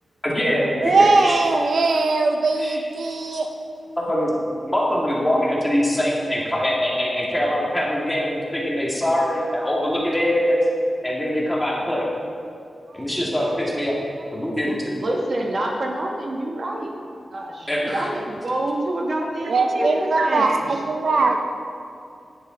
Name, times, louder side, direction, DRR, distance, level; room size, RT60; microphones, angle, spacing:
voice 1, 0.2-1.4 2.6-2.9 4.1-4.3 4.6-10.6 11.0-12.1 13.0-14.0 14.3-14.9 17.7-18.1, equal, 10° left, -4 dB, 1.9 m, -23 dB
voice 2, 0.8-3.5 19.5-21.4, right 3 dB, 70° right, 4 dB, 0.6 m, -20 dB
voice 3, 14.7-16.9 17.3-21.3, right 1 dB, 50° right, 0 dB, 1.2 m, -27 dB
10.5 x 8.2 x 3.8 m, 2.5 s
wide cardioid pair, 125°, 0 cm